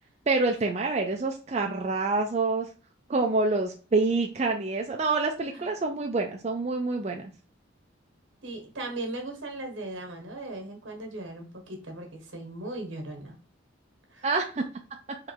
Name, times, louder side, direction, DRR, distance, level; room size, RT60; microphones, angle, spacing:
voice 1, 0.3-2.7 3.1-7.2 14.2-14.7, right 3 dB, 35° right, 2 dB, 0.4 m, -27 dB
voice 2, 8.4-13.3 14.1-14.3, right 2 dB, 75° right, 3 dB, 1.4 m, -38 dB
3.7 x 3.1 x 4.6 m, 0.37 s
head